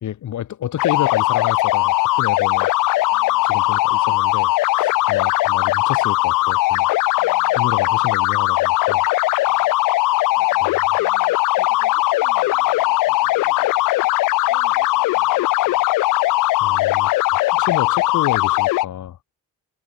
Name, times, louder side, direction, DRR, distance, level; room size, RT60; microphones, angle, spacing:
voice 1, 0.0-2.7 3.4-6.9 7.6-9.1 10.6-10.7 16.6-17.1 17.5-19.2, left 11 dB, 70° left, 2.0 m, -29 dB
sound 1, 0.8-18.9, left 18 dB, 85° left, 0.5 m, -19 dB
voice 2, 3.1-3.5 7.2-7.8 9.5-9.8 10.4-13.7 14.0-14.1 14.5-15.8, right 8 dB, 60° right, 7.6 m, -49 dB
cardioid pair, 85°, 31 cm